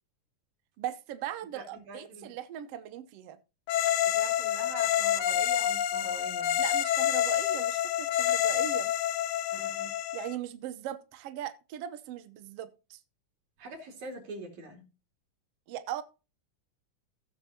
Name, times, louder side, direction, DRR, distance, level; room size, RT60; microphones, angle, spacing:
voice 1, 0.8-3.4 6.6-8.9 10.1-13.0 15.7-16.0, right 11 dB, 75° right, 1.4 m, -39 dB
voice 2, 1.5-2.3 4.0-6.6 9.5-9.9 13.6-14.8, right 1 dB, 60° right, 4.1 m, -44 dB
sound 1, 3.7-10.4, left 11 dB, 75° left, 1.6 m, -28 dB
16.0 x 7.3 x 2.8 m
omnidirectional pair, 3.9 m